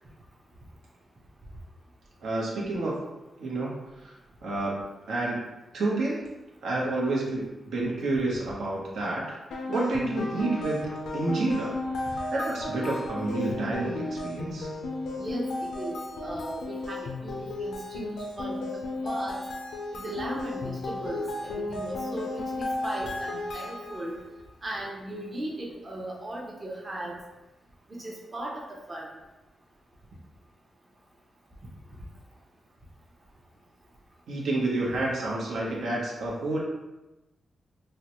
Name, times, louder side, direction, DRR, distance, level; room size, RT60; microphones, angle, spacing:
voice 1, 2.2-3.0 3.4-4.1 4.4-4.8 5.1-5.4 5.7-6.2 6.6-9.4 9.7-14.7 34.3-36.6, right 2 dB, 85° right, -4 dB, 0.9 m, -29 dB
sound 1, 9.5-24.2, left 2 dB, 85° left, 0.4 m, -34 dB
voice 2, 15.2-19.4 19.9-24.1 24.6-27.2 27.9-29.1, right 1 dB, 30° right, -4 dB, 0.6 m, -37 dB
3.8 x 2.2 x 2.9 m, 1.0 s
wide cardioid pair, 135°, 0 cm